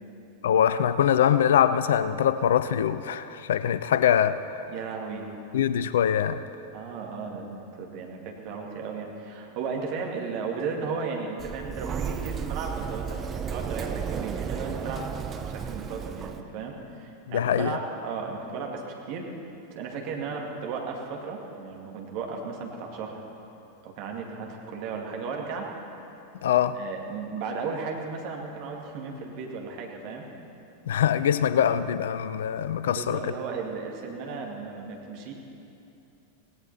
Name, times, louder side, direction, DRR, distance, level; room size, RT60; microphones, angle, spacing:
voice 1, 0.4-4.4 5.5-6.4 17.3-17.8 26.4-26.8 30.9-33.2, left 9 dB, 60° left, 0.5 m, -23 dB
voice 2, 4.7-5.3 6.7-15.1 15.5-19.3 19.7-23.2 23.8-25.7 26.7-30.3 32.8-35.3, right 5 dB, 45° right, 2.4 m, -35 dB
Sliding door, 11.4-16.4, right 7 dB, 25° right, 0.9 m, -33 dB
17.5 x 17.0 x 4.3 m
figure-of-eight pair, 90°, 0 cm